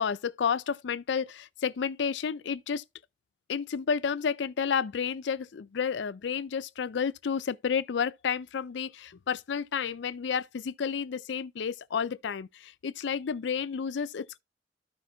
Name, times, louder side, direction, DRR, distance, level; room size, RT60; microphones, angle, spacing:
voice 1, 0.0-2.8 3.5-14.4, left 6 dB, 80° left, 0.4 m, -31 dB
13.0 x 5.8 x 2.3 m
head